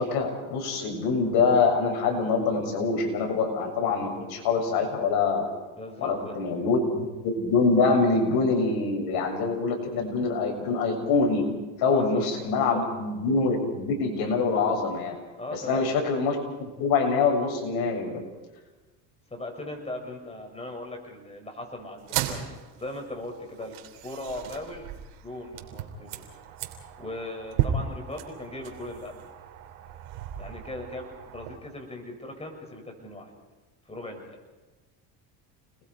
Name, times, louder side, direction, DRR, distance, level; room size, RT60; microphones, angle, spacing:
voice 1, 0.0-5.5 6.0-11.4 11.8-15.1 15.5-18.2, left 4 dB, 65° left, 1 dB, 7.1 m, -25 dB
voice 2, 5.8-6.4 11.8-12.3 12.7-12.8 15.4-15.8 19.3-22.5 22.7-24.9 25.2-26.3 27.0-29.3 30.4-33.3 33.9-34.4, left 1 dB, 15° left, 2 dB, 6.8 m, -38 dB
sound 1, 22.0-31.6, right 9 dB, 75° right, 3.1 m, -35 dB
29.5 x 21.5 x 4.8 m, 1.2 s
supercardioid pair, 100°, 41 cm